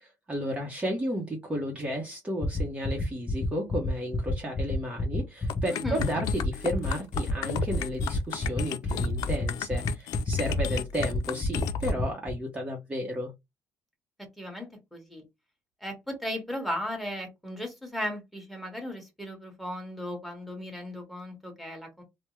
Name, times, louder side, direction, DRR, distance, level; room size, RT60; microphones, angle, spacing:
voice 1, 0.0-13.3, equal, 20° right, 0 dB, 0.8 m, -33 dB
sound 1, 2.4-12.3, left 4 dB, 25° left, 0.7 m, -30 dB
sound 2, 5.5-11.9, left 7 dB, 85° left, 0.4 m, -34 dB
voice 2, 5.7-6.0 14.4-15.2 15.8-22.0, left 1 dB, ahead, 4 dB, 1.2 m, -36 dB
3.4 x 2.1 x 3.0 m, 0.20 s
cardioid pair, 125°, 6 cm